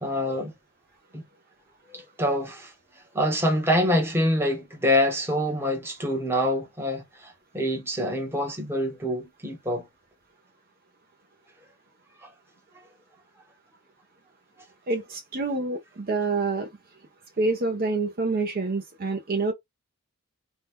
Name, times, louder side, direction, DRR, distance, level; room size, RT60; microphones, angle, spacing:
voice 1, 0.0-0.5 1.1-1.2 1.9-2.7 3.1-9.9 12.2-12.3, left 1 dB, 10° right, 0.9 m, -26 dB
voice 2, 14.9-16.7 17.4-19.5, right 3 dB, 45° right, 0.6 m, -27 dB
2.8 x 2.2 x 3.4 m
head